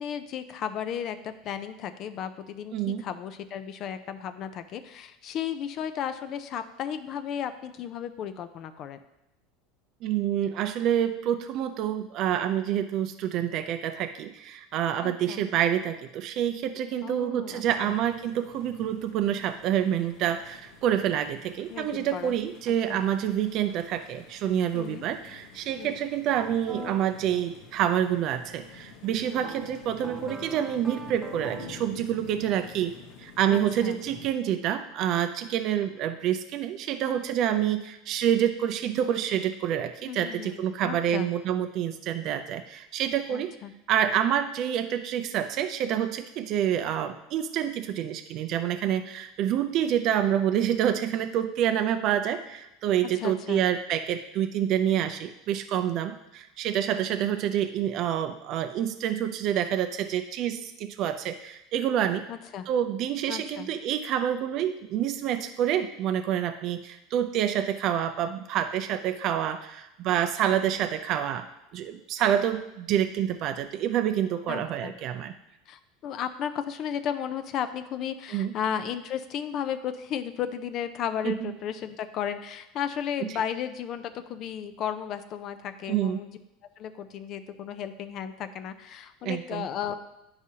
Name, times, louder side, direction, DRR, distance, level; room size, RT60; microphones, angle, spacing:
voice 1, 0.0-9.0 15.0-15.4 17.0-17.9 21.7-22.3 22.7-23.0 24.7-25.0 25.8-26.0 29.2-29.4 33.5-34.0 37.5-37.8 40.1-41.3 43.3-43.7 53.0-53.6 62.3-62.7 63.3-63.7 74.5-74.9 75.7-86.3 86.8-89.9, left 8 dB, 45° left, 10 dB, 0.4 m, -34 dB
voice 2, 2.7-3.0 10.0-43.5 43.9-62.3 62.7-71.5 71.7-75.3 78.3-78.5 81.2-81.5 83.2-83.3 85.9-86.2 89.2-89.7, right 10 dB, 50° right, 8 dB, 0.4 m, -27 dB
sound 1, 17.6-34.3, left 5 dB, 65° left, 0.8 m, -49 dB
sound 2, 26.7-26.9 29.4-31.9, right 2 dB, 15° right, 0.9 m, -41 dB
9.8 x 4.8 x 2.8 m, 0.88 s
supercardioid pair, 135°, 0 cm